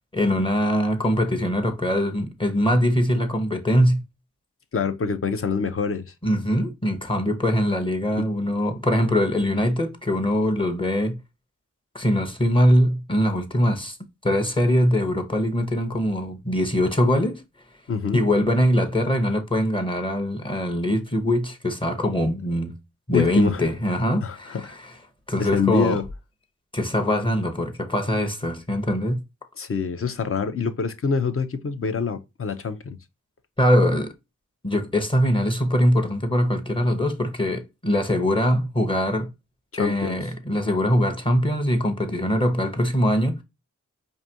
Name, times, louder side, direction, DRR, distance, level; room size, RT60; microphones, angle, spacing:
voice 1, 0.1-4.0 6.2-11.2 11.9-14.0 14.2-17.4 18.1-22.8 23.1-24.9 25.3-26.0 26.7-29.2 33.6-34.1 34.6-39.3 39.8-43.4, equal, 15° left, 0.8 m, -22 dB
voice 2, 4.7-6.1 8.2-8.3 17.9-18.2 23.1-23.6 24.2-24.8 25.4-26.0 29.6-33.0 39.8-40.2, left 5 dB, 45° left, 0.7 m, -26 dB
4.8 x 2.7 x 2.7 m
wide cardioid pair, 80°, 30 cm